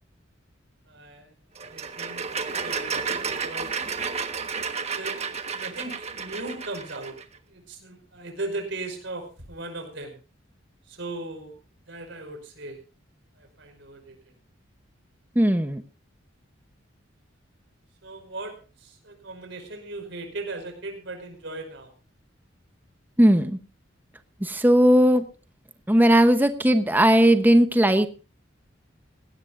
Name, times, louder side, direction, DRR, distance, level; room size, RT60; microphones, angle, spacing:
voice 1, 0.9-1.3 1.6-4.0 5.0-5.2 5.5-7.1 7.5-10.2 10.9-11.6 11.9-12.8 13.4-14.2 18.0-21.9, right 2 dB, 65° right, 4 dB, 5.3 m, -38 dB
sound 1, 1.6-7.2, right 5 dB, 35° right, 1.3 m, -32 dB
voice 2, 15.4-15.8 23.2-23.6 24.4-25.2 25.9-28.1, equal, 10° right, 9 dB, 0.9 m, -18 dB
19.0 x 16.5 x 2.6 m, 0.35 s
head